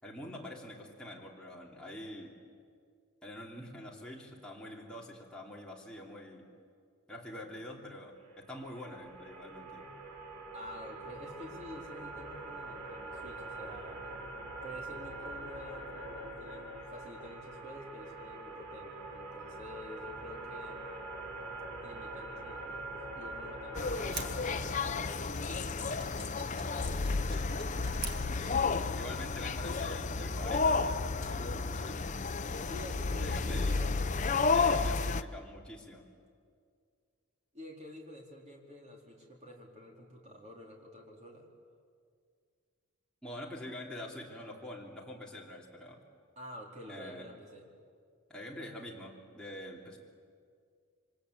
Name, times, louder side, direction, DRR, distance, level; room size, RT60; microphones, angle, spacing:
voice 1, 0.0-2.4 3.2-6.5 7.1-9.9 27.3-27.5 28.9-32.0 33.2-33.8 34.5-36.0 43.2-46.0 46.9-47.3 48.3-50.0, left 1 dB, 5° left, -4 dB, 3.1 m, -45 dB
sound 1, 8.3-25.1, right 2 dB, 90° right, 3.1 m, -44 dB
voice 2, 10.5-14.2 14.6-20.8 21.8-25.5 26.3-27.0 32.6-34.0 37.5-41.5 46.4-47.7, equal, 30° right, -1 dB, 4.1 m, -49 dB
sound 2, 23.7-35.2, left 4 dB, 35° left, 0.7 m, -32 dB
sound 3, 24.1-28.9, right 5 dB, 45° right, 2.1 m, -47 dB
27.5 x 24.5 x 8.4 m, 2.2 s
head